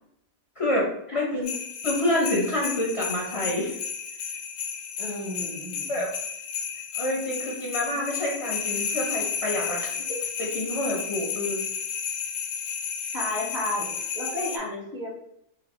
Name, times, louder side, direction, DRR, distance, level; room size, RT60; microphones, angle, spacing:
voice 1, 0.6-1.5 1.8-3.8 5.9-6.1 6.9-10.0 10.4-11.6, left 1 dB, 25° left, -4 dB, 0.8 m, -27 dB
sound 1, 1.4-14.6, left 7 dB, 90° left, 1.1 m, -32 dB
voice 2, 5.0-5.9 13.1-13.9 14.1-15.1, left 1 dB, 35° right, -6 dB, 1.4 m, -32 dB
3.3 x 2.8 x 3.9 m, 0.76 s
omnidirectional pair, 1.4 m